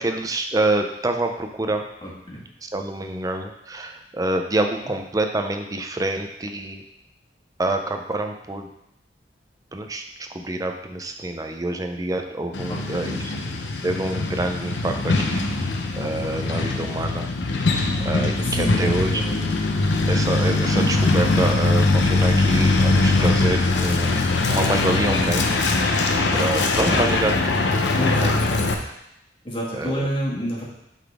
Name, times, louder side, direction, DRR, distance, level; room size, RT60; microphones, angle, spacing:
voice 1, 0.0-1.9 2.6-6.8 7.6-8.7 9.7-10.0 10.3-13.3 13.8-15.4 15.9-17.3 18.0-19.1 20.1-25.5 26.3-27.3 28.0-28.3 29.7-30.1, right 2 dB, 20° right, 4 dB, 0.5 m, -26 dB
voice 2, 2.0-2.4 12.7-13.5 18.4-19.4 26.9-27.2 28.0-28.4 29.4-30.6, equal, 30° left, -5 dB, 1.6 m, -30 dB
Truck, 12.5-28.7, left 2 dB, 85° left, 0.7 m, -21 dB
8.2 x 3.9 x 3.5 m, 0.84 s
head